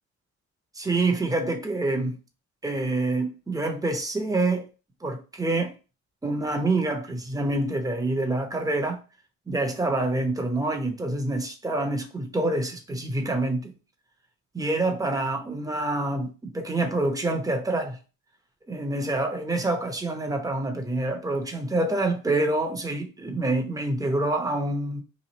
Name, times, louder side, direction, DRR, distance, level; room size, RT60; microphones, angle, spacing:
voice 1, 0.8-2.2 2.6-4.7 5.0-5.7 6.2-9.0 9.5-13.7 14.5-18.0 18.7-25.0, right 2 dB, 10° right, 0.8 m, -26 dB
3.1 x 2.5 x 3.9 m
cardioid pair, 90°, 30 cm